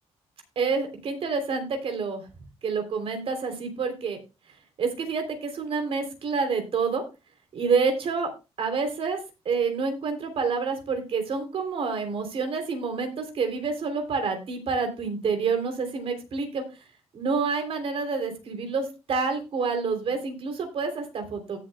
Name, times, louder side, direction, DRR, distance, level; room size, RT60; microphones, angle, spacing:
voice 1, 0.5-2.2 2.6-4.2 4.8-7.0 7.5-8.3 8.6-9.2 9.4-16.6 17.1-21.6, right 5 dB, 55° right, 6 dB, 3.2 m, -28 dB
17.0 x 7.5 x 2.2 m, 0.28 s
cardioid pair, 115°, 11 cm